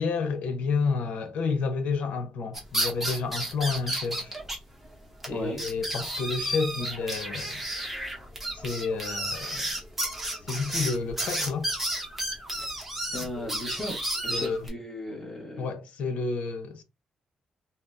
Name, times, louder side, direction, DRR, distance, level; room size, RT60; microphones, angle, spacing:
voice 1, 0.0-4.3 5.3-7.6 8.5-9.7 10.4-11.7 13.3-13.5 14.3-14.7 15.6-16.8, left 4 dB, 80° left, 0.8 m, -30 dB
sound 1, 2.5-4.6 4.9-5.0 5.2-5.3 5.6-14.7, right 1 dB, 10° right, 0.8 m, -32 dB
voice 2, 5.3-5.6 13.0-15.7, left 1 dB, 10° left, 1.1 m, -36 dB
2.8 x 2.0 x 3.5 m
wide cardioid pair, 170°, 2 cm